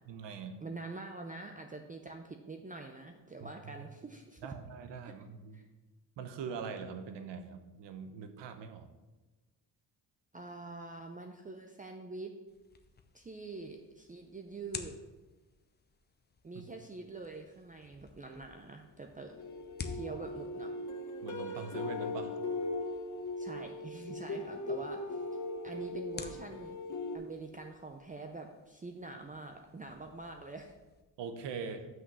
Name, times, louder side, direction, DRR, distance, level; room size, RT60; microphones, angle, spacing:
voice 1, 0.1-0.6 3.4-3.5 4.4-5.6 6.2-8.9 21.2-22.4 31.2-31.9, right 6 dB, 90° right, 8 dB, 0.9 m, -42 dB
voice 2, 0.6-4.5 5.5-5.6 10.3-12.3 13.1-14.9 16.4-19.4 19.8-20.7 23.4-25.2 25.6-26.8 27.1-30.7, right 3 dB, 20° right, 4 dB, 0.5 m, -45 dB
sound 1, 12.5-31.0, left 4 dB, 25° left, 0.6 m, -52 dB
sound 2, 19.3-27.2, left 2 dB, 45° left, 1.0 m, -39 dB
6.2 x 5.8 x 5.4 m, 1.2 s
cardioid pair, 115°, 41 cm